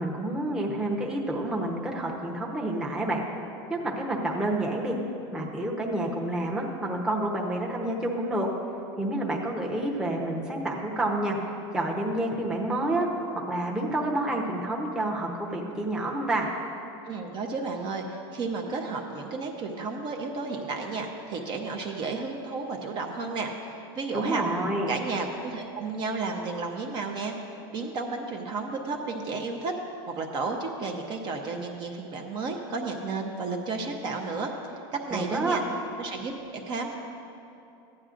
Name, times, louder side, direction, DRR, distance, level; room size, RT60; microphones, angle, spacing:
voice 1, 0.0-3.3 3.7-5.0 5.3-8.5 9.0-11.4 11.7-13.1 13.3-16.5 24.1-24.9 35.1-35.6, right 1 dB, 5° right, -2 dB, 0.9 m, -29 dB
voice 2, 17.0-24.4 24.9-27.3 27.7-29.7 30.1-35.6 36.0-37.0, right 3 dB, 35° right, 2 dB, 0.7 m, -32 dB
14.5 x 9.6 x 2.5 m, 2.7 s
supercardioid pair, 150°, 13 cm